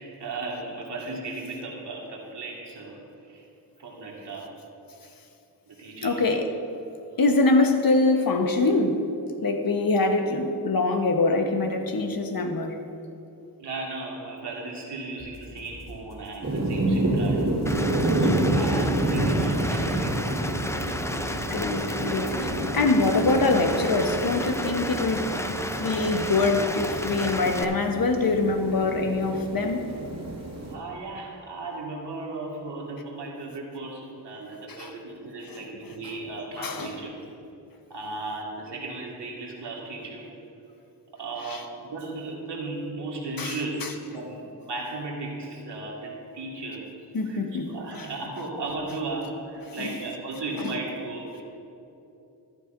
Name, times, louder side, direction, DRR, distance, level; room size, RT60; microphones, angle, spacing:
voice 1, 0.0-3.4 3.8-4.5 5.7-6.2 13.6-17.4 18.2-20.6 20.8-21.2 30.7-37.2 37.9-40.2 41.1-46.8 47.3-51.4, right 2 dB, 75° right, -3 dB, 1.9 m, -36 dB
voice 2, 6.0-6.5 7.2-9.1 9.4-12.8 21.4-29.9 34.7-34.9 35.5-36.0 36.5-37.0 41.5-41.6 43.4-43.9 47.1-48.1 49.8-50.0 50.6-50.7, left 3 dB, 55° left, 5 dB, 1.1 m, -24 dB
sound 1, 15.2-22.5, left 1 dB, 80° left, 2.1 m, -45 dB
sound 2, 16.4-30.7, right 1 dB, 40° right, 2.2 m, -28 dB
Rain, 17.7-27.7, left 1 dB, 5° left, 0.5 m, -33 dB
14.5 x 11.0 x 2.6 m, 2.8 s
cardioid pair, 55°, 42 cm